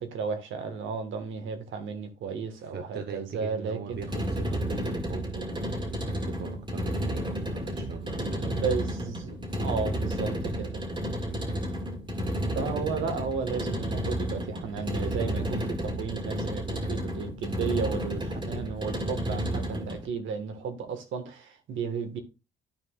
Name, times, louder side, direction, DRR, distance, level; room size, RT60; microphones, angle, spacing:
voice 1, 0.0-4.0 8.1-10.8 12.5-22.2, right 5 dB, 80° right, 1.6 m, -34 dB
voice 2, 2.6-8.6 11.2-11.4, right 6 dB, 55° right, 1.0 m, -41 dB
sound 1, 3.9-20.1, equal, 25° right, 2.0 m, -32 dB
12.5 x 4.6 x 2.4 m
cardioid pair, 90°, 20 cm